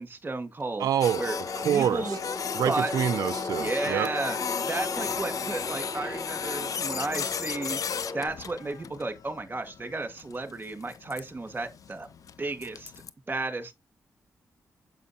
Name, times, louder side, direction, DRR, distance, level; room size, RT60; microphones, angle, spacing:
voice 1, 0.0-0.9 1.2-1.4 1.6-2.2 2.6-2.9 3.6-4.4 4.7-7.8 8.1-12.1 12.4-12.9 13.3-13.7, right 2 dB, 30° right, 1.8 m, -33 dB
voice 2, 0.8-1.2 1.6-2.2 2.5-4.1, right 9 dB, 85° right, 0.4 m, -26 dB
Printer, 1.0-13.1, left 7 dB, 65° left, 0.6 m, -35 dB
sound 1, 1.1-8.3, left 2 dB, 30° left, 5.2 m, -37 dB
7.5 x 5.1 x 2.8 m
cardioid pair, 65°, 6 cm